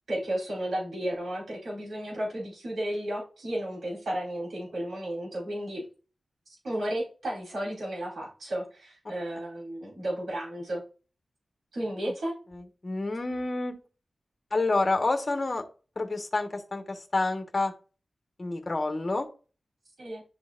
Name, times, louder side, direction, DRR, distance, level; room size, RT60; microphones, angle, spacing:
voice 1, 0.1-5.8 6.6-10.8 11.7-12.3 20.0-20.2, right 1 dB, 85° right, -5 dB, 3.8 m, -33 dB
voice 2, 12.8-13.7 14.5-15.6 16.0-17.7 18.4-19.3, left 2 dB, 35° left, 4 dB, 1.2 m, -28 dB
11.0 x 3.9 x 2.5 m, 0.35 s
wide cardioid pair, 115°, 0 cm